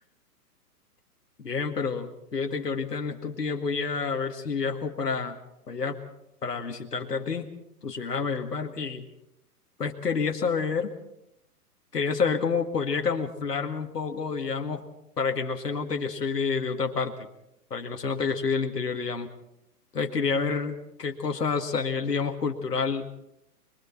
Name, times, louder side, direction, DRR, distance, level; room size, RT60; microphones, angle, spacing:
voice 1, 1.4-5.4 5.7-6.0 6.4-7.5 7.8-9.0 9.8-10.9 11.9-14.8 15.2-17.1 17.7-19.3 19.9-23.1, left 5 dB, 85° left, 3 dB, 2.1 m, -28 dB
27.0 x 22.5 x 4.4 m, 0.82 s
hypercardioid pair, 125°, 47 cm